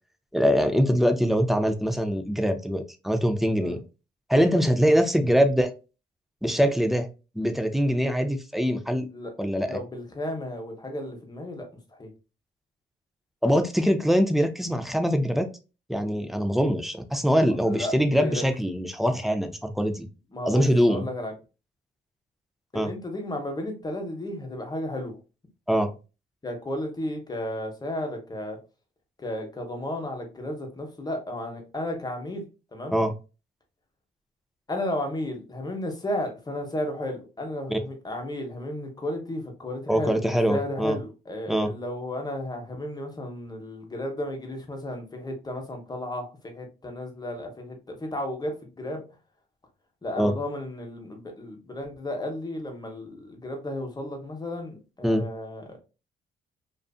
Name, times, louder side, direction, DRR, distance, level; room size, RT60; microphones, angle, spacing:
voice 1, 0.3-3.8 4.3-5.7 6.4-7.1 7.4-9.1 9.4-9.8 13.4-15.5 15.9-20.1 20.4-21.1 22.7-22.9 25.7-25.9 32.9-33.1 37.7-37.8 39.9-41.0 41.5-41.7 50.2-50.3 55.0-55.2, equal, ahead, 8 dB, 0.4 m, -23 dB
voice 2, 9.7-12.1 17.6-18.4 20.3-21.3 22.7-25.2 26.4-28.6 29.2-32.5 32.7-33.0 34.7-49.0 50.0-55.8, left 1 dB, 20° left, 3 dB, 0.8 m, -33 dB
2.4 x 2.4 x 2.3 m, 0.31 s
cardioid pair, 90°, 20 cm